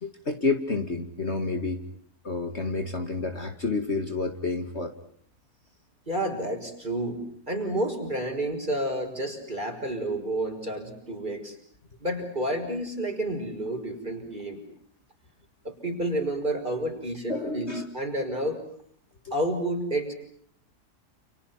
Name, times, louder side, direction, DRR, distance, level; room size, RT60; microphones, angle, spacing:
voice 1, 0.0-1.8 2.2-4.9 17.3-17.8 19.3-19.4, left 3 dB, 45° left, 6 dB, 2.4 m, -29 dB
voice 2, 6.1-7.2 7.5-11.6 12.0-14.6 15.6-18.6 19.3-20.1, right 1 dB, 30° right, 4 dB, 6.3 m, -30 dB
30.0 x 29.5 x 5.9 m, 0.63 s
omnidirectional pair, 1.7 m